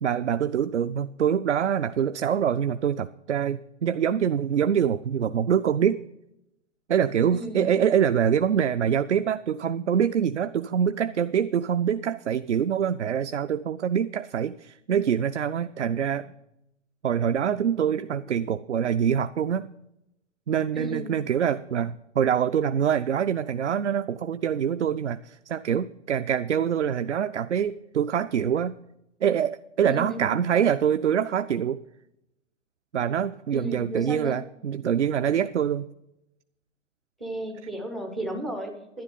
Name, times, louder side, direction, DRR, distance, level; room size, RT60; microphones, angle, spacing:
voice 1, 0.0-6.0 6.9-16.3 17.0-19.7 20.5-28.8 29.2-31.8 32.9-35.9, right 8 dB, 70° right, 11 dB, 0.5 m, -25 dB
voice 2, 7.3-7.7 20.7-21.1 29.8-30.3 33.5-34.4 37.2-39.0, right 1 dB, 5° right, 2 dB, 0.3 m, -34 dB
11.0 x 10.5 x 5.5 m, 0.87 s
figure-of-eight pair, 115°, 36 cm